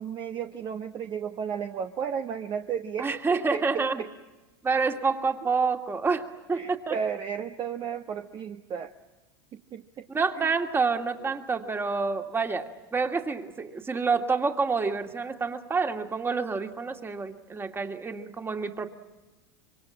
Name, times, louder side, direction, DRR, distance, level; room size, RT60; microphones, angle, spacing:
voice 1, 0.0-4.1 5.4-5.5 6.5-8.9 9.5-10.1 10.3-10.5 11.2-11.3 11.8-11.9 14.1-14.2, right 7 dB, 35° right, 6 dB, 1.2 m, -34 dB
voice 2, 3.0-4.0 4.6-7.0 10.1-18.9, right 4 dB, 15° right, 6 dB, 2.4 m, -28 dB
26.5 x 24.0 x 8.8 m, 1.1 s
hypercardioid pair, 100°, 13 cm